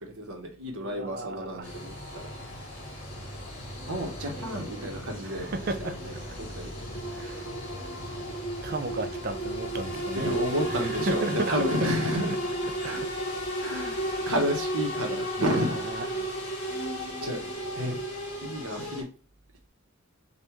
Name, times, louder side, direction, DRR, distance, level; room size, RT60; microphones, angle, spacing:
voice 1, 0.0-1.9 3.9-5.5 6.4-6.7 9.9-12.3 12.8-13.0 13.6-14.0 14.2-15.8 16.9-17.4 17.7-18.0 18.4-19.0, equal, 85° right, 1.2 m, -31 dB
voice 2, 0.8-1.7 5.2-6.2 7.1-7.7 8.6-11.9 12.7-12.8 13.0-13.1 14.1-14.2 15.4-16.1, right 2 dB, 45° right, 0.5 m, -35 dB
sound 1, 1.6-19.0, equal, 55° left, 2.0 m, -34 dB
5.4 x 2.5 x 3.1 m
head